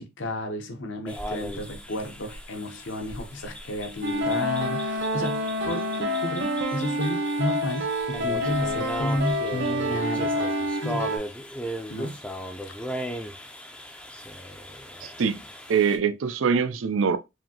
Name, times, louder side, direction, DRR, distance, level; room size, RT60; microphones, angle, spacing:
voice 1, 0.0-10.5 10.8-11.1 11.9-12.2, left 1 dB, 70° left, 0.8 m, -32 dB
sound 1, 1.1-16.0, equal, 5° left, 0.4 m, -38 dB
sound 2, 4.0-11.2, equal, 55° right, 1.0 m, -28 dB
voice 2, 15.0-15.4 15.7-17.2, right 6 dB, 80° right, 0.5 m, -23 dB
4.8 x 2.6 x 2.8 m
head